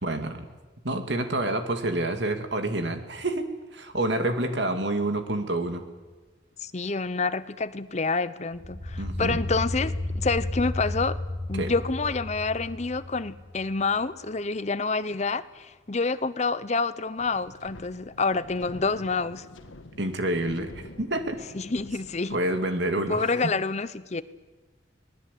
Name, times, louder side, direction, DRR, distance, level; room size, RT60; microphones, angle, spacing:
voice 1, 0.0-0.5 0.8-5.8 9.0-9.4 11.5-11.7 20.0-21.4 22.3-23.5, right 1 dB, 60° right, 7 dB, 2.4 m, -28 dB
voice 2, 6.6-11.2 11.5-19.4 21.5-22.4 23.1-24.2, left 4 dB, 35° left, 15 dB, 0.8 m, -28 dB
sound 1, 8.5-13.8, left 1 dB, 25° right, 5.1 m, -33 dB
Wind, 17.2-22.8, left 1 dB, 80° left, 1.7 m, -47 dB
25.5 x 19.5 x 8.5 m, 1.3 s
head